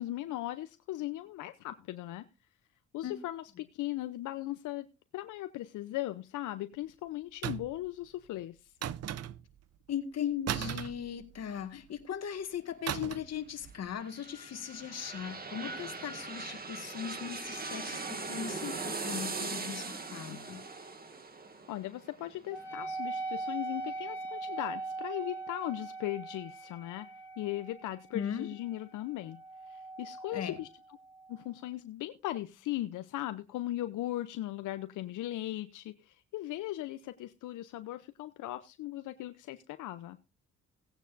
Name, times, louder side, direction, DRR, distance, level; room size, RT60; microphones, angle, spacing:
voice 1, 0.0-2.3 2.9-4.9 5.1-8.7 21.7-27.1 27.4-29.4 29.7-30.7 31.3-40.2, left 15 dB, 85° left, 0.7 m, -38 dB
sound 1, 7.4-7.9 8.8-9.6 10.5-11.6 12.9-13.4 13.6-13.9, right 11 dB, 55° right, 0.7 m, -37 dB
voice 2, 9.9-20.6 28.1-28.5 30.3-30.6, left 9 dB, 55° left, 1.9 m, -38 dB
sound 2, 13.8-23.4 23.8-23.9, right 4 dB, 30° right, 2.1 m, -40 dB
Wind instrument woodwind instrument, 22.5-31.4, right 3 dB, 5° left, 5.7 m, -41 dB
17.5 x 9.1 x 2.6 m
cardioid pair, 90°, 30 cm